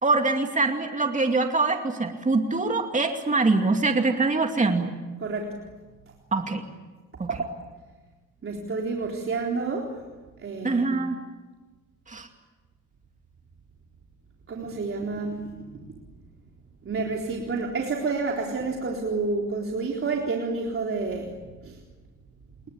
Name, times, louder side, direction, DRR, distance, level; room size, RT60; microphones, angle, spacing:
voice 1, 0.0-4.9 6.3-6.6 7.2-7.3 10.6-11.2 12.1-12.3, right 3 dB, 25° right, 4 dB, 2.5 m, -24 dB
voice 2, 5.2-5.6 7.3-7.5 8.4-9.9 10.4-11.0 14.5-15.5 16.9-21.3 21.6-21.8, right 4 dB, 45° right, 0 dB, 4.0 m, -29 dB
26.5 x 23.0 x 8.7 m, 1.2 s
cardioid pair, 90°, 30 cm